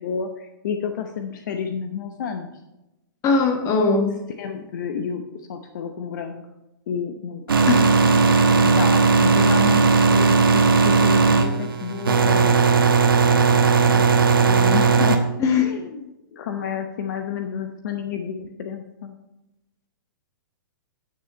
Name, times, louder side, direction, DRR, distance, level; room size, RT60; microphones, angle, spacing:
voice 1, 0.0-2.5 4.4-5.2 5.5-6.4 6.9-7.7 8.6-12.6 13.3-14.0 14.4-15.2 15.6-19.1, left 7 dB, 55° left, 6 dB, 0.8 m, -30 dB
voice 2, 3.2-4.1 7.7-8.2 15.4-15.7, left 4 dB, 30° left, 3 dB, 1.6 m, -20 dB
sound 1, 7.5-15.2, right 4 dB, 80° right, 1.1 m, -17 dB
9.4 x 6.9 x 4.4 m, 0.94 s
hypercardioid pair, 125°, 12 cm